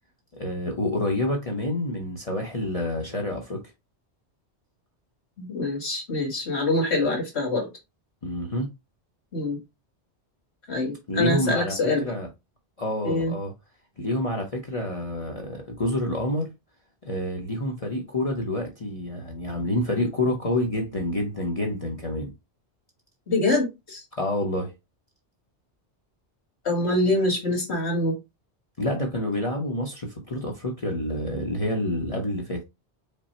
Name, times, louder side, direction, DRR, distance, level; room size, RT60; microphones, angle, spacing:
voice 1, 0.3-3.6 8.2-8.7 11.1-12.3 12.8-13.5 14.0-16.5 17.0-22.3 24.2-24.7 28.8-32.6, left 1 dB, 35° left, 0.8 m, -28 dB
voice 2, 5.4-7.7 9.3-9.6 10.7-12.0 13.0-13.3 23.3-24.0 26.6-28.2, left 2 dB, 70° left, 2.1 m, -25 dB
5.2 x 2.0 x 4.3 m
omnidirectional pair, 1.1 m